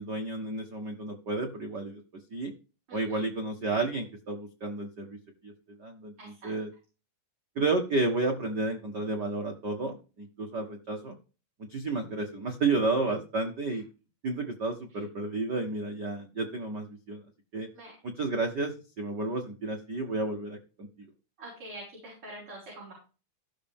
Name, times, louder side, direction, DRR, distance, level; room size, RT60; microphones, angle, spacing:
voice 1, 0.0-2.0 2.3-2.5 2.9-5.2 5.4-5.5 5.8-6.7 7.5-11.2 11.6-13.8 14.2-17.2 17.5-17.7 18.0-21.1, right 3 dB, 75° right, 3 dB, 0.9 m, -31 dB
voice 2, 6.2-6.5 17.7-17.9 21.4-22.9, right 1 dB, 35° right, -7 dB, 6.7 m, -45 dB
16.5 x 6.7 x 3.6 m, 0.34 s
omnidirectional pair, 4.2 m